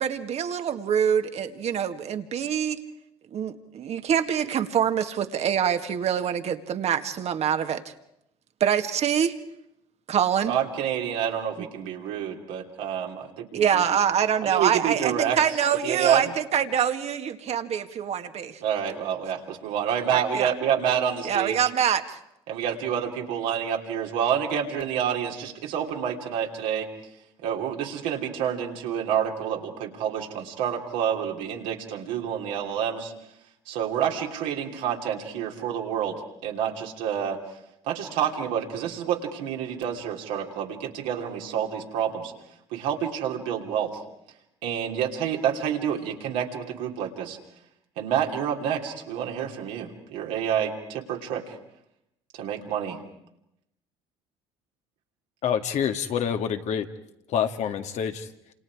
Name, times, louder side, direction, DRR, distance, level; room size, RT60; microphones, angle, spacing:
voice 1, 0.0-2.8 3.3-7.8 8.6-9.3 10.1-10.5 13.5-18.6 20.1-20.5 21.2-22.2, right 8 dB, 55° right, 7 dB, 1.9 m, -25 dB
voice 2, 10.5-13.8 14.4-15.4 15.8-16.3 18.6-21.6 22.5-26.9 27.4-33.1 33.7-37.4 37.8-42.3 42.7-43.9 44.6-47.4 48.0-51.6 52.3-53.0, right 9 dB, 75° right, 1 dB, 3.3 m, -28 dB
voice 3, 55.4-56.9 57.3-58.3, left 8 dB, 60° left, 6 dB, 2.0 m, -27 dB
28.5 x 27.5 x 4.9 m, 0.82 s
hypercardioid pair, 60°, 13 cm